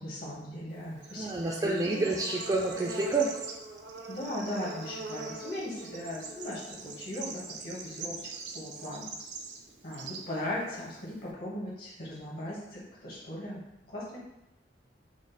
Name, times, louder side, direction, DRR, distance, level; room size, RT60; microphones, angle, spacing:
voice 1, 0.0-2.1 4.1-8.2 8.5-9.1 9.8-13.6 13.9-14.2, left 1 dB, 55° left, -6 dB, 1.4 m, -38 dB
Bird / Insect, 0.7-11.3, right 4 dB, 75° right, 0.6 m, -43 dB
voice 2, 1.2-3.3, right 3 dB, 20° right, -2 dB, 0.4 m, -29 dB
5.0 x 2.0 x 3.9 m, 0.87 s
head